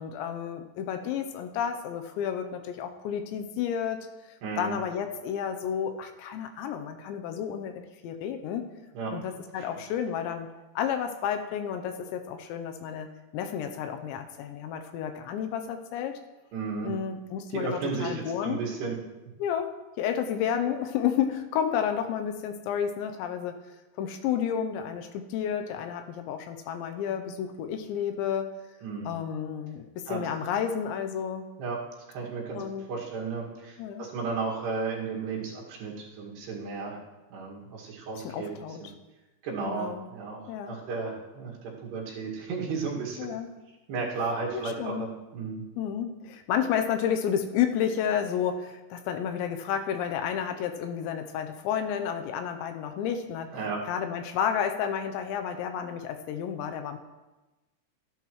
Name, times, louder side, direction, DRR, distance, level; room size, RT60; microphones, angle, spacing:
voice 1, 0.0-4.1 4.6-8.6 9.1-10.5 10.8-16.2 16.8-18.6 19.4-23.6 24.0-28.5 29.1-31.5 32.5-32.9 33.8-34.0 38.2-38.8 39.6-40.1 40.5-40.8 43.2-43.5 44.5-45.0 45.8-53.5 53.9-57.0, left 8 dB, 85° left, 6 dB, 3.0 m, -31 dB
voice 2, 4.4-4.8 8.9-9.1 9.6-9.7 16.5-16.9 17.5-19.0 28.8-29.2 30.1-30.3 31.6-31.8 32.1-32.6 32.9-37.0 37.3-38.9 39.4-43.3 43.9-45.1 45.3-45.6 53.5-53.8, right 4 dB, 65° right, -3 dB, 4.0 m, -34 dB
14.5 x 11.0 x 3.1 m, 1.1 s
omnidirectional pair, 5.2 m